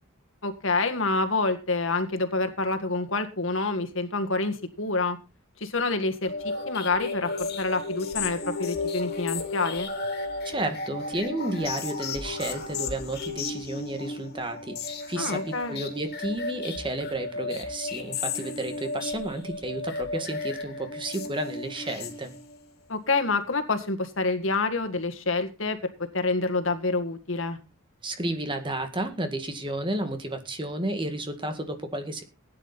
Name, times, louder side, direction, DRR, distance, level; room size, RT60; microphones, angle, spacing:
voice 1, 0.4-5.2 5.6-6.3 6.7-9.9 15.2-15.8 22.9-27.6, left 3 dB, 65° left, 7 dB, 1.8 m, -27 dB
sound 1, 6.2-22.7, left 3 dB, 50° left, 2.7 m, -34 dB
voice 2, 10.4-22.3 28.0-32.2, right 1 dB, 25° right, 7 dB, 1.9 m, -32 dB
16.0 x 10.0 x 4.1 m, 0.30 s
head